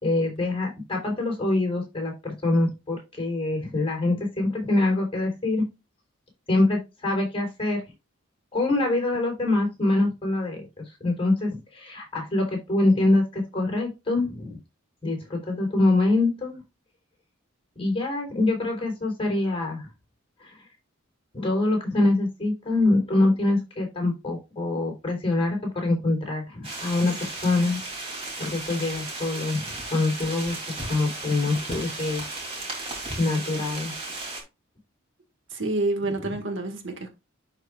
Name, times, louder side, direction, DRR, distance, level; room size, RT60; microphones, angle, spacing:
voice 1, 0.0-5.6 6.5-7.8 8.5-10.7 11.0-14.6 15.0-16.6 17.8-19.9 20.4-20.5 21.3-27.8 28.4-29.6 29.9-30.5 30.9-32.2 33.2-33.9 36.2-36.4, left 2 dB, 25° left, 3.7 m, -24 dB
sound 1, 26.6-34.4, right 2 dB, 25° right, 3.1 m, -35 dB
voice 2, 35.5-37.1, right 2 dB, 60° right, 1.8 m, -28 dB
11.5 x 4.8 x 2.5 m
head